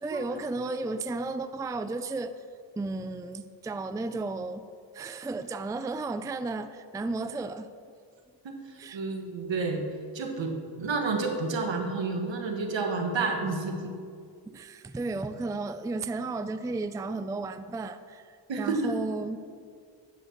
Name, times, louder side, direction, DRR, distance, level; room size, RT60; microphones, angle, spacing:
voice 1, 0.0-2.3 2.8-4.7 4.9-7.7 8.8-9.0 14.5-19.4, right 3 dB, 10° right, 12 dB, 0.3 m, -33 dB
voice 2, 8.4-9.8 10.1-13.9 18.5-18.9, right 3 dB, 75° right, 4 dB, 1.5 m, -30 dB
9.9 x 6.9 x 6.6 m, 2.2 s
cardioid pair, 80°, 45 cm